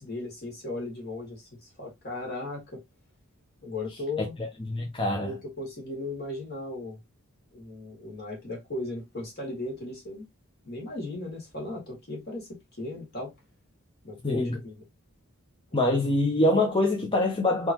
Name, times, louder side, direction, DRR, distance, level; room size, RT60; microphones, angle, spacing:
voice 1, 0.0-2.8 3.6-4.4 5.2-7.0 7.5-10.3 10.6-13.3 14.0-14.8, left 2 dB, 45° left, 2.1 m, -37 dB
voice 2, 4.7-5.3 14.2-14.6 15.7-17.7, left 1 dB, 25° left, 0.7 m, -24 dB
3.8 x 3.0 x 2.9 m
head